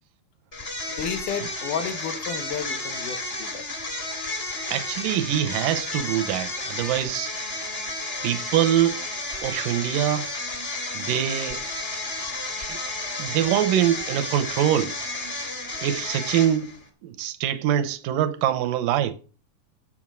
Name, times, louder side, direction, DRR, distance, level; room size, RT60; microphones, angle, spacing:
sound 1, 0.5-16.8, left 2 dB, 20° left, 1.8 m, -32 dB
voice 1, 0.9-3.7, left 7 dB, 70° left, 2.5 m, -32 dB
voice 2, 4.7-7.5 8.2-9.0 9.4-10.3 10.9-11.6 12.7-12.8 13.2-15.0 15.8-16.7 17.0-19.1, right 11 dB, 80° right, 2.4 m, -24 dB
8.7 x 7.8 x 6.1 m
omnidirectional pair, 3.9 m